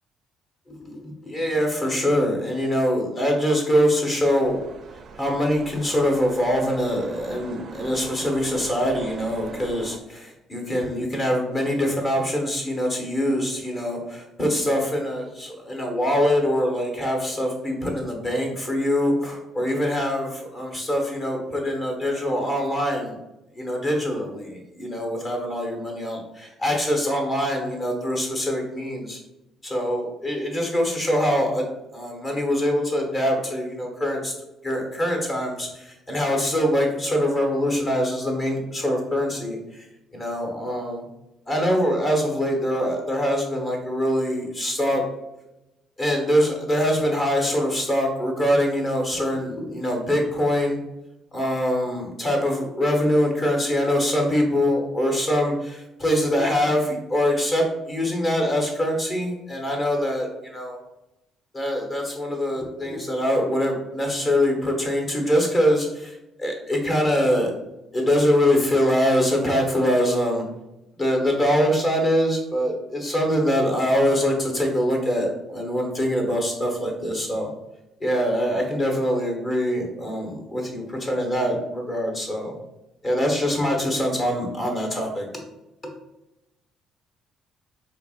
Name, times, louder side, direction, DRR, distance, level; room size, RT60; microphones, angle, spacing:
voice 1, 0.7-4.6 5.2-23.2 23.5-29.2 29.6-31.6 31.9-34.3 34.6-39.8 40.1-41.1 41.5-45.0 46.0-50.8 51.3-60.8 61.5-67.5 67.9-70.4 71.0-77.5 78.0-82.5 83.0-85.3, equal, 35° left, 1 dB, 1.1 m, -24 dB
sound 1, 4.4-10.0, right 4 dB, 50° right, 0.4 m, -42 dB
4.4 x 2.8 x 2.4 m, 0.94 s
cardioid pair, 110°, 0 cm